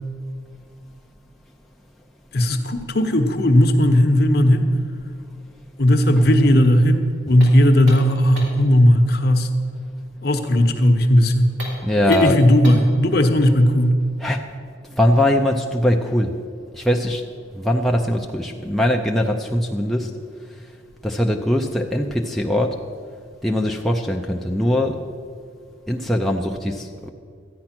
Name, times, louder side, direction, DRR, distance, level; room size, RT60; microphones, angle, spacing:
voice 1, 2.3-4.7 5.8-9.5 10.2-11.5 12.1-14.0, left 1 dB, 50° left, 6 dB, 0.9 m, -16 dB
sound 1, 7.4-8.7 11.5-13.0, equal, 70° right, 3.1 m, -36 dB
voice 2, 11.8-12.4 14.2-14.4 14.8-16.4 16.7-17.2 17.5-20.2 21.0-22.8 23.4-25.0 25.9-27.1, left 1 dB, ahead, 0 dB, 0.5 m, -21 dB
13.5 x 9.7 x 6.0 m, 2.2 s
head